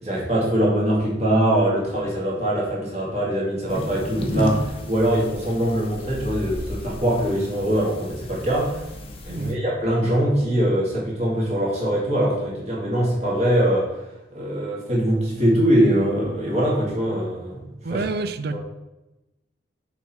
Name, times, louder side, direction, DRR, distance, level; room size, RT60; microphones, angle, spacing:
voice 1, 0.0-8.9 9.2-13.9 14.3-17.6 17.9-18.0 18.5-18.6, right 1 dB, 35° right, -5 dB, 2.4 m, -22 dB
sound 1, 3.7-9.5, left 1 dB, 30° left, 0.8 m, -33 dB
voice 2, 9.3-9.6 17.8-18.6, right 3 dB, 50° right, 11 dB, 0.4 m, -28 dB
6.9 x 4.6 x 4.4 m, 0.97 s
head